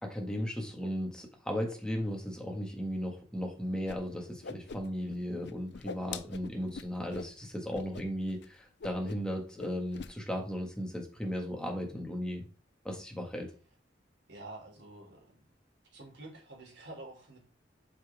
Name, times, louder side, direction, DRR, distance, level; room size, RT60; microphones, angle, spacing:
voice 1, 0.0-12.4 12.8-13.5, equal, 5° left, 1.9 m, -36 dB
Whoosh swoosh swish, 3.9-4.0 4.2-5.2 5.4-7.3 7.7-8.0 8.3-8.5 8.8-9.3 9.6-10.1, left 5 dB, 70° left, 0.6 m, -43 dB
voice 2, 14.3-15.4 15.9-17.4, right 2 dB, 75° right, 3.5 m, -48 dB
7.5 x 5.8 x 3.6 m
head